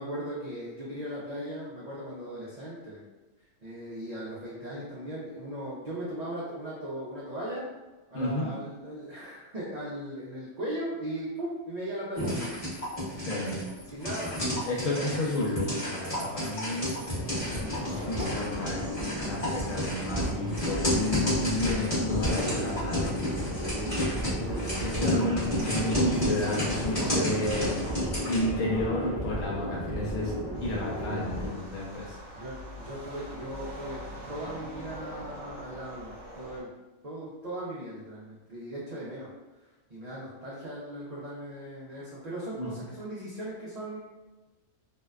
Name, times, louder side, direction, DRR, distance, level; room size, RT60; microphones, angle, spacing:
voice 1, 0.0-3.0 3.6-7.7 8.1-12.3 13.8-14.4 25.0-25.2 32.3-34.0 34.3-36.7 37.0-39.3 39.9-44.0, right 1 dB, 85° right, -7 dB, 0.3 m, -38 dB
voice 2, 8.1-8.5 13.2-13.7 14.7-16.9 17.8-23.2 24.6-28.0 28.3-30.3 30.6-32.1 42.6-42.8, left 2 dB, 75° left, -4 dB, 1.1 m, -31 dB
sound 1, 12.2-28.4, equal, 30° left, 1.0 m, -32 dB
sound 2, 17.1-31.5, equal, 55° left, 0.6 m, -33 dB
sound 3, 30.5-36.6, equal, 65° right, 1.0 m, -43 dB
2.6 x 2.2 x 2.3 m, 1.2 s
omnidirectional pair, 1.4 m